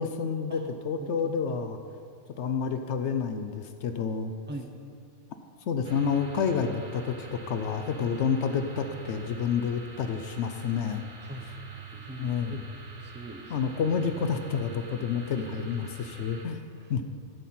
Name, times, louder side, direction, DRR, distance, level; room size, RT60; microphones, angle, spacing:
voice 1, 0.0-1.8 2.4-4.3 5.7-11.0 12.2-12.6 13.5-16.6 16.9-17.0, left 6 dB, 70° left, 7 dB, 0.8 m, -29 dB
voice 2, 1.0-1.6 4.5-4.8 8.1-8.2 11.2-12.6 13.0-13.5 15.4-15.5 16.8-16.9, right 1 dB, 10° right, 4 dB, 0.6 m, -42 dB
sound 1, 5.8-16.5, right 5 dB, 60° right, 1.1 m, -45 dB
12.5 x 4.2 x 7.5 m, 2.2 s
omnidirectional pair, 1.3 m